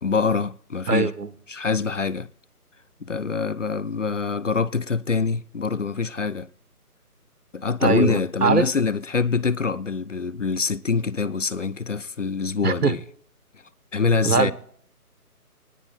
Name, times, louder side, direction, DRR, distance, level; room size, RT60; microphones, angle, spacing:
voice 1, 0.0-1.1 1.5-2.3 3.0-6.5 7.5-13.0 13.9-14.5, left 5 dB, 55° left, 0.5 m, -25 dB
voice 2, 0.9-1.3 7.8-8.6 12.6-12.9 14.2-14.5, right 5 dB, 80° right, 1.5 m, -21 dB
25.5 x 19.0 x 2.4 m
figure-of-eight pair, 175°, 46 cm